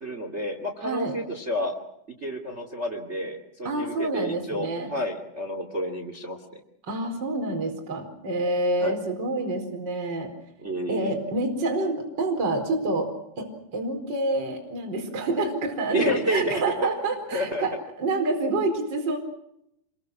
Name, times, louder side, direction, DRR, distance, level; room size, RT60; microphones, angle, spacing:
voice 1, 0.0-1.7 2.2-6.6 8.8-9.0 10.6-11.2 15.9-16.9 17.3-17.7, equal, 40° right, 6 dB, 0.9 m, -30 dB
voice 2, 0.8-1.1 3.6-4.9 6.9-10.3 10.9-13.1 13.4-13.5 13.7-17.7 18.0-19.2, right 2 dB, 25° right, 2 dB, 4.6 m, -27 dB
28.0 x 23.0 x 6.2 m, 0.77 s
omnidirectional pair, 5.6 m